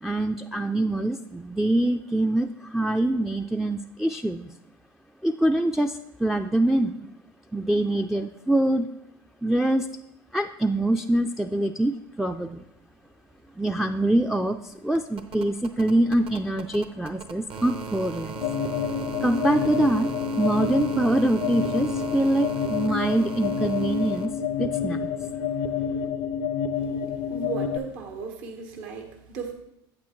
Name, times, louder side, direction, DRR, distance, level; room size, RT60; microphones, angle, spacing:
voice 1, 0.0-4.5 5.2-7.1 7.5-8.9 9.4-9.9 10.3-12.6 13.6-18.4 19.2-20.1 20.4-24.3 24.6-25.0, right 1 dB, ahead, 4 dB, 0.3 m, -24 dB
sound 1, 13.0-13.1 13.3-24.3 25.7-25.8, right 6 dB, 50° right, 0.8 m, -38 dB
sound 2, 18.4-27.8, left 7 dB, 70° left, 0.5 m, -28 dB
voice 2, 27.3-29.5, right 4 dB, 70° right, 4 dB, 1.3 m, -35 dB
8.6 x 8.1 x 3.0 m, 0.84 s
hypercardioid pair, 85°, 12 cm